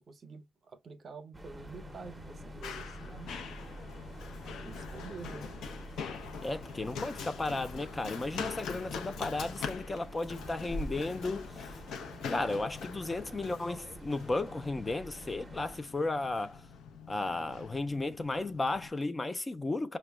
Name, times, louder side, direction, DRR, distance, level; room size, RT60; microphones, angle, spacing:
voice 1, 0.0-3.3 4.6-5.5, right 4 dB, 45° right, 0.7 m, -48 dB
sound 1, 1.3-15.8, right 1 dB, 10° right, 0.7 m, -48 dB
Run, 1.6-18.9, left 5 dB, 80° left, 0.6 m, -43 dB
voice 2, 6.4-11.7 12.3-16.7 17.1-20.0, left 2 dB, 20° left, 0.3 m, -34 dB
5.0 x 2.1 x 2.2 m
cardioid pair, 90°, 0 cm